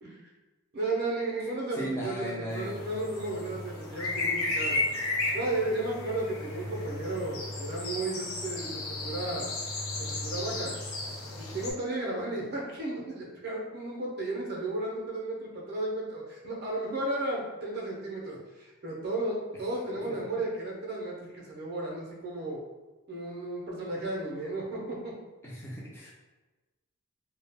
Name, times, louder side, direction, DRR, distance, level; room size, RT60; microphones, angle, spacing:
voice 1, 0.7-4.8 5.3-9.5 10.1-10.7 11.4-22.6 23.1-25.1, right 2 dB, 45° right, -2 dB, 0.5 m, -34 dB
voice 2, 1.7-2.7 25.4-26.1, equal, 10° left, -5 dB, 0.4 m, -36 dB
sound 1, 2.5-11.7, left 2 dB, 80° left, 0.5 m, -34 dB
2.3 x 2.1 x 3.3 m, 1.2 s
head